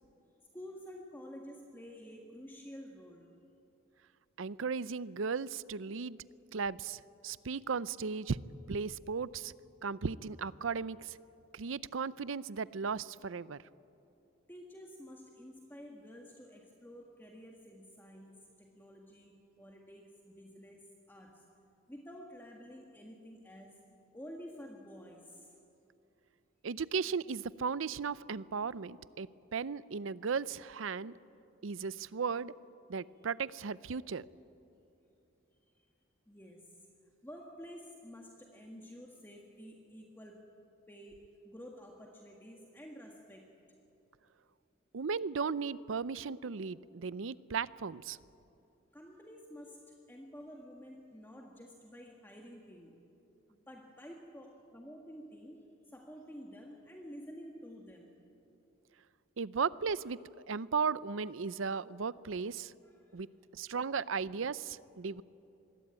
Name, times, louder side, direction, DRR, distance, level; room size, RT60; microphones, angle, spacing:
voice 1, 0.5-3.3 14.5-21.5 21.9-23.8 24.1-25.5 33.2-33.3 35.8-35.9 36.3-36.7 37.2-40.5 40.9-43.5 48.9-53.0 53.5-58.1 62.8-63.2, equal, 10° left, 0 dB, 1.7 m, -50 dB
voice 2, 4.4-6.2 6.5-8.4 8.7-9.5 9.8-11.2 11.5-13.6 26.6-31.1 31.6-32.5 32.9-34.2 44.9-48.2 59.4-60.2 60.5-62.7 63.1-63.3 63.5-65.2, right 5 dB, 85° right, 18 dB, 0.6 m, -36 dB
26.0 x 21.5 x 9.0 m, 2.8 s
head